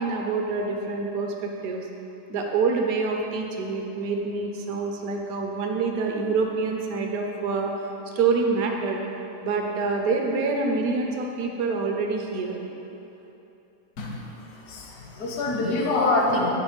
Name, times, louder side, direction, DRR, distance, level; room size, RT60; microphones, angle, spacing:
voice 1, 0.0-1.9 2.3-7.7 8.1-9.0 9.4-12.6, right 4 dB, 70° right, 1 dB, 1.2 m, -26 dB
voice 2, 14.0-16.5, left 2 dB, 70° left, -1 dB, 1.4 m, -25 dB
9.7 x 4.5 x 5.2 m, 3.0 s
omnidirectional pair, 1.6 m